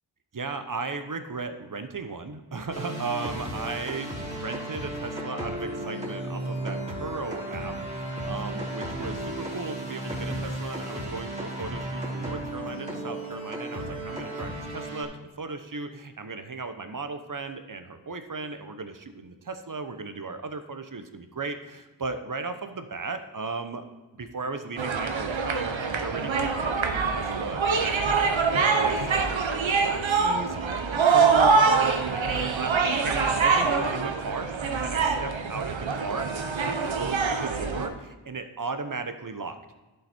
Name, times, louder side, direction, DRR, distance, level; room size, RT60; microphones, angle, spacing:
voice 1, 0.3-23.8 24.2-26.7 27.1-29.3 29.7-30.6 30.9-39.6, right 4 dB, 45° right, 8 dB, 0.9 m, -36 dB
sound 1, 2.7-15.0, right 1 dB, 15° right, 2.8 m, -34 dB
sound 2, 24.8-37.9, right 5 dB, 80° right, 0.9 m, -24 dB
11.5 x 5.6 x 4.3 m, 1.2 s
cardioid pair, 45°, 46 cm